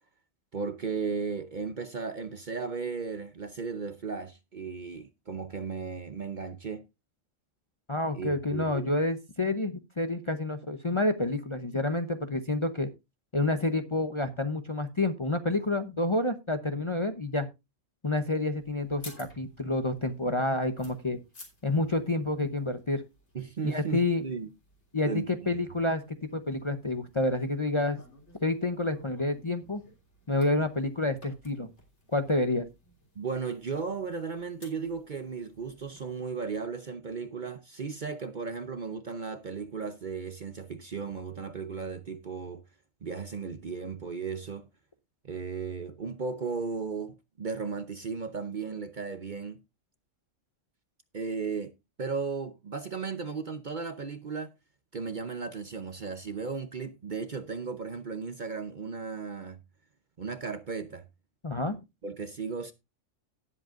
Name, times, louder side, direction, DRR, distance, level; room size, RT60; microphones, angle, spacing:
voice 1, 0.5-6.8 8.1-8.9 23.3-24.5 25.0-25.5 33.2-42.6 43.0-44.7 45.2-49.6 51.1-51.7 52.0-54.5 54.9-59.6 60.2-61.1 62.0-62.7, right 5 dB, 45° right, 0.8 m, -35 dB
voice 2, 7.9-12.9 13.3-17.5 18.0-21.2 21.6-23.0 23.6-24.2 24.9-25.1 25.5-26.0 26.3-28.0 28.4-29.8 30.3-31.7 32.1-32.7 61.4-61.8, left 2 dB, 30° left, 0.7 m, -28 dB
sound 1, 18.6-36.0, left 1 dB, 55° left, 3.7 m, -56 dB
18.0 x 7.8 x 2.5 m
omnidirectional pair, 1.4 m